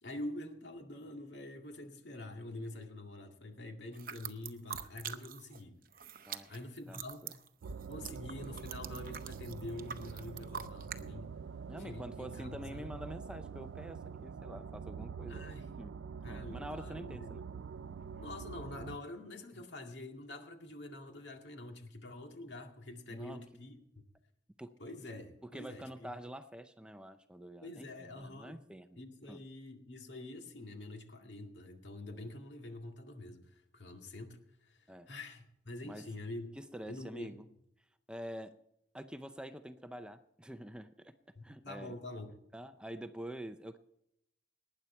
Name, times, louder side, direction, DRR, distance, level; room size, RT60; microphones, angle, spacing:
voice 1, 0.0-5.8 6.5-7.4 7.9-11.3 11.8-12.9 15.3-15.7 16.2-17.3 18.2-24.0 24.8-26.1 27.6-28.6 29.0-36.5 36.9-37.4 41.3-42.4, left 2 dB, 70° left, 3 dB, 2.1 m, -46 dB
sound 1, 3.9-5.6 5.9-11.0, right 8 dB, 50° right, 0.8 m, -45 dB
voice 2, 6.9-7.3 8.0-8.1 11.6-15.5 15.8-16.0 16.2-17.4 19.5-19.6 23.1-23.4 24.6-24.8 25.4-29.0 29.3-29.4 34.9-35.1 35.8-36.1 36.6-37.5 38.1-38.6 38.9-41.1 41.4-41.9 42.5-43.8, equal, 5° right, 10 dB, 0.5 m, -46 dB
sound 2, 7.6-19.0, right 6 dB, 85° right, 0.4 m, -45 dB
19.0 x 9.7 x 4.4 m, 0.77 s
head